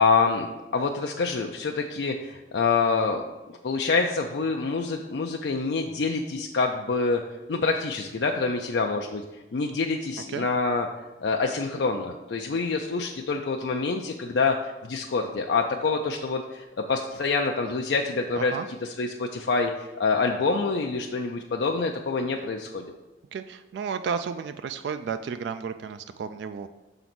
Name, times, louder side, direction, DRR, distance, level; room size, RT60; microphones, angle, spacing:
voice 1, 0.0-3.2 3.6-7.2 7.5-9.2 9.5-10.9 11.2-18.5 19.0-19.7 20.0-22.8, left 4 dB, 75° left, 2 dB, 0.4 m, -26 dB
voice 2, 18.4-18.7 23.3-26.7, right 6 dB, 80° right, 10 dB, 0.3 m, -32 dB
5.9 x 3.9 x 5.9 m, 1.1 s
head